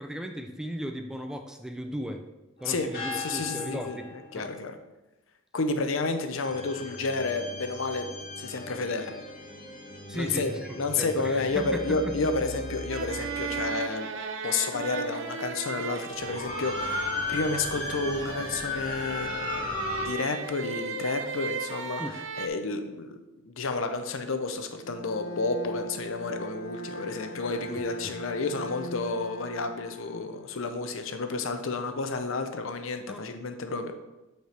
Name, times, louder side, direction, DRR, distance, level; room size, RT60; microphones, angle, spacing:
voice 1, 0.0-2.2 2.6-4.5 10.1-12.1 22.0-22.2 27.7-28.1 33.1-33.3, equal, 5° right, 5 dB, 0.3 m, -36 dB
sound 1, 2.6-4.4 6.4-13.8 14.9-15.0 16.1-20.0, left 2 dB, 40° left, 1.6 m, -37 dB
voice 2, 3.1-4.8 5.5-8.1 8.4-9.1 10.1-14.1 14.4-22.0 22.4-23.2 23.4-34.0, left 3 dB, 70° left, 7 dB, 0.6 m, -31 dB
hoochie violin variation, 12.9-22.5, right 4 dB, 65° right, 0.6 m, -36 dB
Bowed string instrument, 24.8-30.8, equal, 85° left, 1.0 m, -40 dB
8.1 x 4.5 x 3.4 m, 1.0 s
head